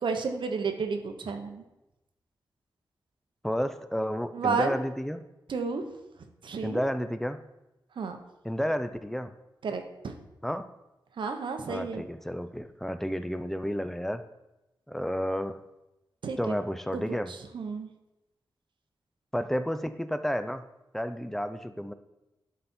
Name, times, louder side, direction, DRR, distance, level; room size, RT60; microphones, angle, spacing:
voice 1, 0.0-1.6 4.3-4.7 5.5-5.8 6.4-6.8 8.0-8.2 9.6-10.1 11.2-12.0 16.2-16.6 16.9-17.0 17.3-17.9, right 5 dB, 80° right, 6 dB, 0.9 m, -31 dB
voice 2, 3.4-5.2 6.6-7.4 8.4-9.3 10.4-10.7 11.7-14.2 14.9-15.6 16.4-17.3 19.3-20.6 20.9-21.9, equal, 5° left, 11 dB, 0.5 m, -31 dB
11.0 x 4.2 x 4.3 m, 0.97 s
wide cardioid pair, 95°, 8 cm